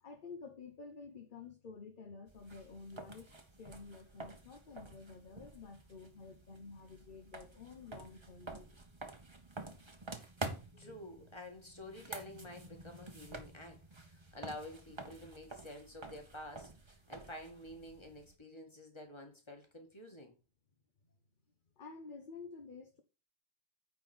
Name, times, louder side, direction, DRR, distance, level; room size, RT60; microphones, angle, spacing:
voice 1, 0.0-9.0 10.7-11.0 21.8-23.0, left 4 dB, 50° left, 1.1 m, -51 dB
sound 1, 2.3-18.3, right 2 dB, 25° right, 1.1 m, -49 dB
voice 2, 10.8-20.4, left 1 dB, 25° left, 2.1 m, -50 dB
9.4 x 4.2 x 6.1 m
omnidirectional pair, 1.1 m